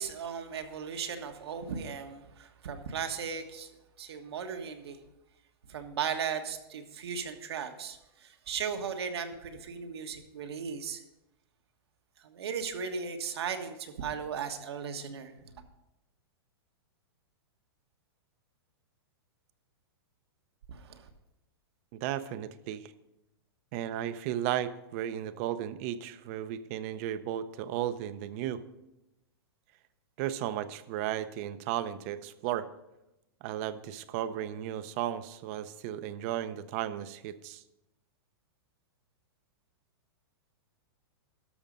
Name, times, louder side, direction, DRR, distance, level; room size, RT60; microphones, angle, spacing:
voice 1, 0.0-3.7 4.0-5.0 5.7-11.0 12.2-15.3 20.7-21.1, right 6 dB, 80° right, 6 dB, 1.4 m, -37 dB
voice 2, 21.9-22.9 23.7-28.6 30.2-32.7 33.4-37.6, right 11 dB, 35° right, 13 dB, 0.6 m, -34 dB
13.0 x 6.3 x 5.3 m, 0.94 s
hypercardioid pair, 160°, 13 cm